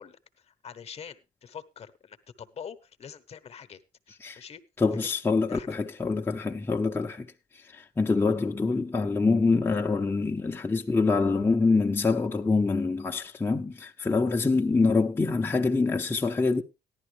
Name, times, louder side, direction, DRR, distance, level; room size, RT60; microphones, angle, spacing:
voice 1, 0.0-3.8 4.1-4.6 5.5-5.7, left 7 dB, 40° left, 1.0 m, -45 dB
voice 2, 4.8-7.3 7.5-16.6, left 3 dB, 15° left, 0.7 m, -25 dB
14.0 x 11.5 x 3.2 m
cardioid pair, 110°, 17 cm